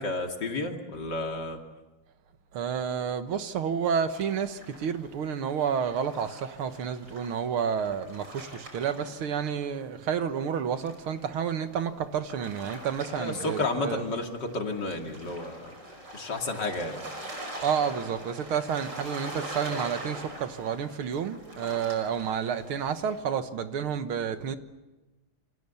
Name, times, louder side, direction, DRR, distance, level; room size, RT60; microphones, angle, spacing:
voice 1, 0.0-1.6 13.1-15.7 16.1-17.0, left 2 dB, 55° left, 3 dB, 3.1 m, -31 dB
voice 2, 2.5-14.0 17.6-24.6, right 7 dB, 90° right, 10 dB, 2.2 m, -30 dB
sound 1, 4.1-9.8 10.1-23.2, right 1 dB, 55° right, 6.2 m, -43 dB
28.5 x 25.5 x 7.1 m, 1.1 s
omnidirectional pair, 2.3 m